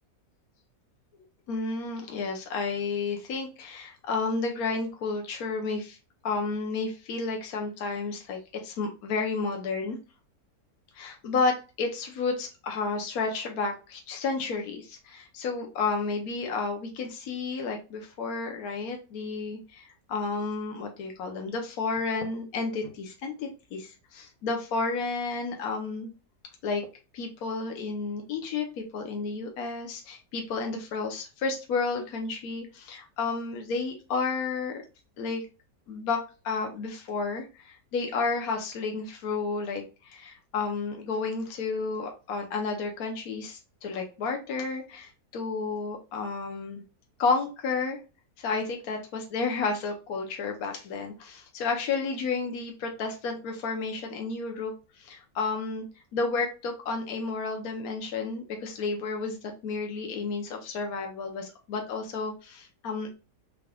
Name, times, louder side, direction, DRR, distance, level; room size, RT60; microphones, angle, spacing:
voice 1, 1.5-6.0 6.2-10.0 10.9-26.1 26.6-26.9 27.1-34.8 35.2-35.4 35.9-46.8 47.2-48.0 48.4-55.9 56.1-63.1, left 4 dB, 70° left, 2 dB, 1.3 m, -31 dB
4.7 x 3.5 x 2.3 m, 0.31 s
omnidirectional pair, 1.7 m